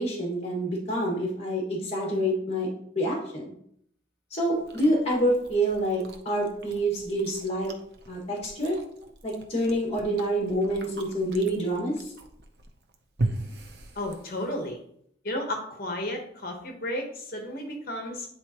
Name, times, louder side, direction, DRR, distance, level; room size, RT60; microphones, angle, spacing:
voice 1, 0.0-2.7 3.0-3.5 4.3-7.7 8.1-8.8 9.2-12.1, right 1 dB, 35° left, -2 dB, 1.9 m, -27 dB
Chewing mastication, 4.5-14.7, right 2 dB, 60° right, 0.7 m, -39 dB
voice 2, 14.0-14.8 15.2-18.3, left 1 dB, 50° left, 2 dB, 1.2 m, -33 dB
9.7 x 4.0 x 3.0 m, 0.68 s
head